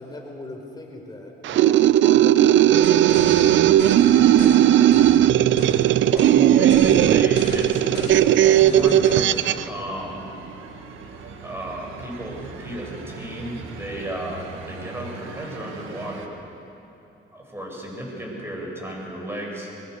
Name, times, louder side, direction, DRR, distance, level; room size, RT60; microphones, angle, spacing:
voice 1, 0.0-3.6 4.0-4.9, left 2 dB, 20° left, 1 dB, 4.5 m, -41 dB
sound 1, 1.4-9.6, right 12 dB, 70° right, 0.6 m, -16 dB
sound 2, 2.1-16.3, right 5 dB, 90° right, 1.8 m, -42 dB
sound 3, 2.8-4.6 4.9-5.9 6.2-6.4 6.7-9.3, left 4 dB, 55° left, 3.6 m, -34 dB
voice 2, 6.1-10.3 11.4-16.4 17.3-19.9, right 1 dB, 10° right, -1 dB, 7.1 m, -33 dB
23.0 x 22.5 x 6.7 m, 2.8 s
cardioid pair, 90°, 20 cm